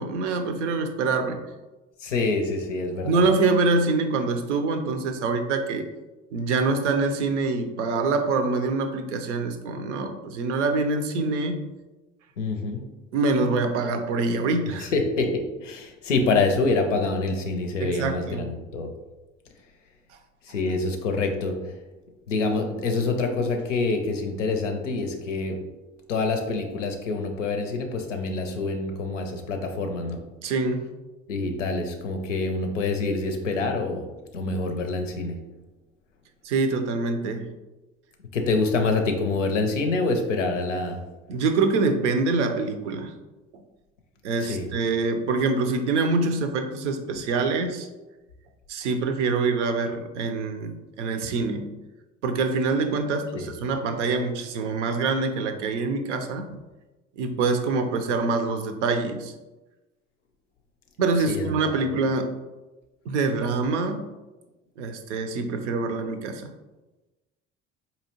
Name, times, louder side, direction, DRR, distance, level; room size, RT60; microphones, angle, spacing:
voice 1, 0.0-1.4 3.0-5.9 6.3-11.7 13.1-14.9 17.8-18.5 30.4-30.8 36.4-37.5 41.3-43.1 44.2-47.9 48.7-51.7 52.2-56.6 57.2-59.3 61.0-62.4 63.1-64.1 64.8-66.5, right 3 dB, 75° right, 7 dB, 0.5 m, -25 dB
voice 2, 2.0-3.2 12.4-12.9 14.8-18.9 20.4-21.7 22.3-25.6 26.1-30.3 31.3-34.1 34.3-35.4 38.3-41.1 44.5-44.7 53.3-53.5 61.3-61.7, left 3 dB, 85° left, 5 dB, 0.5 m, -26 dB
4.1 x 2.7 x 2.8 m, 1.1 s
figure-of-eight pair, 55°, 36 cm